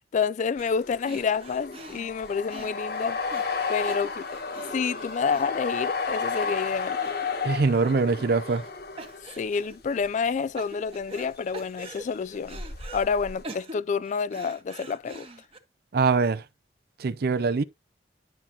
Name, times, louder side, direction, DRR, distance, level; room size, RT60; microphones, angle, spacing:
voice 1, 0.1-3.2 3.7-7.0 9.4-12.6 12.9-15.3, left 5 dB, 45° left, 0.3 m, -28 dB
sound 1, 0.6-10.1 11.0-11.5 11.8-13.4, left 5 dB, 60° left, 1.3 m, -33 dB
sound 2, 0.6-0.8 1.0-6.2 6.5-6.7 7.0-7.6 7.8-8.7 9.0-9.8 10.2-11.3 11.5-13.1 13.4-15.6, right 2 dB, 35° right, 1.3 m, -44 dB
voice 2, 7.4-8.6 15.9-16.4 17.0-17.6, right 4 dB, 60° right, 0.5 m, -23 dB
11.0 x 5.9 x 2.8 m
head